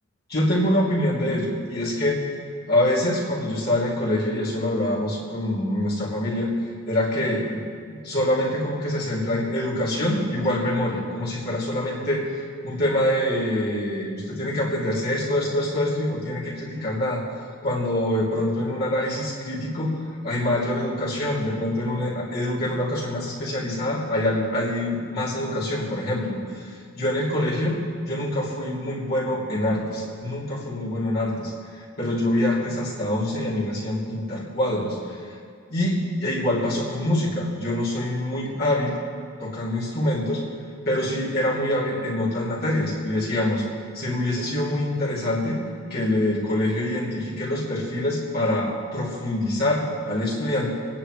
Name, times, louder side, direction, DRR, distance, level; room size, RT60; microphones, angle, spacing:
voice 1, 0.3-2.2 2.7-6.5 6.9-7.6 7.9-17.2 17.6-35.3 35.7-39.0 39.4-40.4 40.8-43.6 43.9-45.6 45.9-50.7, left 1 dB, 45° left, -7 dB, 2.9 m, -25 dB
28.0 x 10.0 x 3.2 m, 2.2 s
head